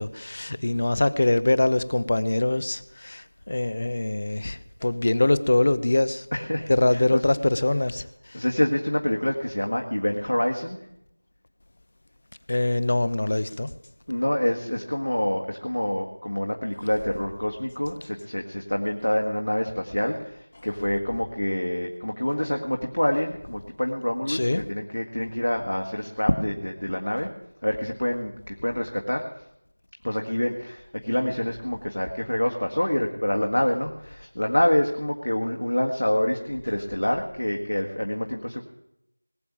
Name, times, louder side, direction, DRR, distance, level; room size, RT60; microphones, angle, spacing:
voice 1, 0.0-6.3 6.7-8.4 12.5-13.7 24.3-24.7, left 2 dB, 30° left, 0.5 m, -23 dB
voice 2, 6.3-7.2 8.3-10.8 14.1-27.3 27.6-29.2 30.0-38.6, left 1 dB, 65° left, 1.8 m, -26 dB
20.0 x 7.0 x 8.8 m
figure-of-eight pair, 175°, 0 cm